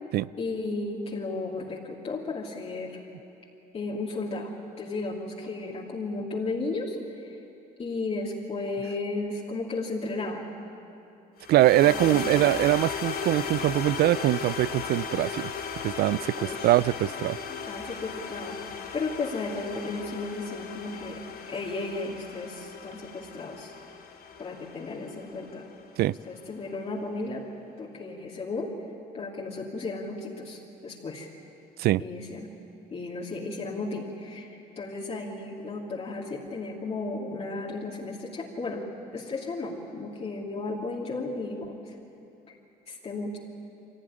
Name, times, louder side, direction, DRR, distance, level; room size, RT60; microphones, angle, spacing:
voice 1, 0.4-3.0 3.7-7.4 7.8-10.5 11.8-12.5 16.4-16.7 17.5-21.2 21.5-23.7 24.4-25.7 26.2-27.4 27.8-28.7 29.1-31.3 32.0-32.5 32.9-38.8 39.1-41.9 42.5-42.6 42.9-43.4, left 3 dB, 35° left, -3 dB, 2.8 m, -34 dB
sound 1, 11.4-25.8, left 6 dB, 65° left, 5.0 m, -36 dB
voice 2, 11.5-15.5 15.8-17.4 26.0-26.2 31.8-32.0, right 15 dB, 70° right, 21 dB, 0.4 m, -23 dB
23.5 x 17.0 x 10.0 m, 2.8 s
cardioid pair, 110°, 17 cm